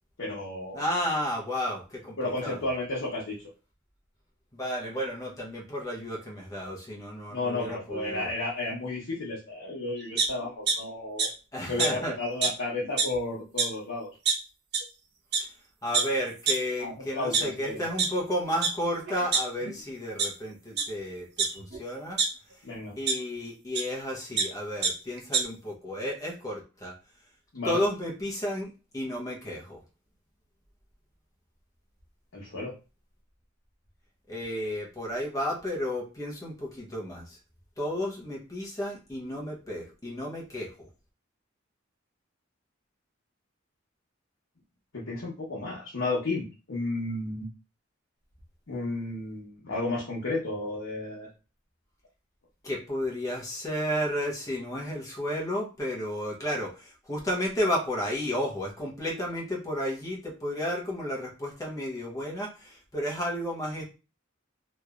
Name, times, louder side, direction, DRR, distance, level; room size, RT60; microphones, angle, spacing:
voice 1, 0.2-0.8 2.2-3.4 7.3-11.3 11.6-14.1 16.8-17.8 22.6-22.9 27.5-27.8 32.3-32.7 44.9-47.5 48.7-51.3, left 2 dB, 75° left, -5 dB, 1.0 m, -32 dB
voice 2, 0.7-2.6 4.5-8.3 11.5-12.2 15.8-22.2 23.0-27.0 27.6-29.8 34.3-37.4 37.8-40.9 52.6-63.9, equal, 15° left, -2 dB, 0.9 m, -32 dB
sound 1, 10.2-10.7 11.2-11.3 11.8-11.9 12.4-12.5 12.8-13.2 13.6-13.7 14.3-14.4 14.7-14.8 15.3-15.4 15.9-16.0 16.5-16.6 17.1-18.1 18.6-18.7 19.1-19.8 20.2-20.3 20.7-20.8 21.4-22.3 23.1-23.2 23.7-23.8 24.1-24.4 24.8-24.9 25.2-25.4, right 5 dB, 55° right, 0.7 m, -25 dB
3.1 x 3.0 x 2.4 m, 0.31 s
head